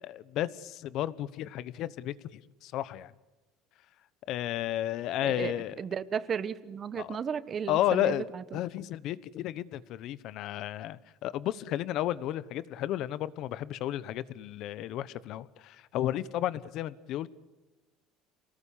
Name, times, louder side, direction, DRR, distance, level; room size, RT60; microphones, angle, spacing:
voice 1, 0.0-3.1 4.3-5.8 7.0-7.2 7.7-8.2 8.5-17.3, left 13 dB, 60° left, 17 dB, 1.1 m, -33 dB
voice 2, 5.2-8.6, right 7 dB, 35° right, 14 dB, 1.2 m, -34 dB
28.0 x 19.5 x 8.6 m, 1.1 s
cardioid pair, 130°, 0 cm